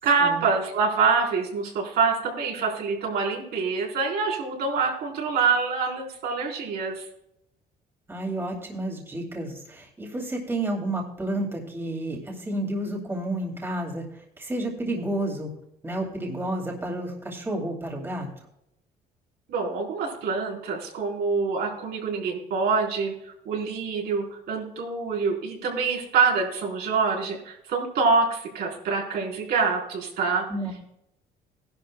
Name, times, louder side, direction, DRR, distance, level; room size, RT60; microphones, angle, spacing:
voice 1, 0.0-7.0 19.5-23.1 23.5-30.5, right 4 dB, 70° right, -2 dB, 4.2 m, -25 dB
voice 2, 8.1-15.5 15.8-18.3 30.5-30.7, right 1 dB, 15° right, 0 dB, 2.6 m, -31 dB
16.5 x 11.5 x 2.2 m, 0.79 s
cardioid pair, 110°, 17 cm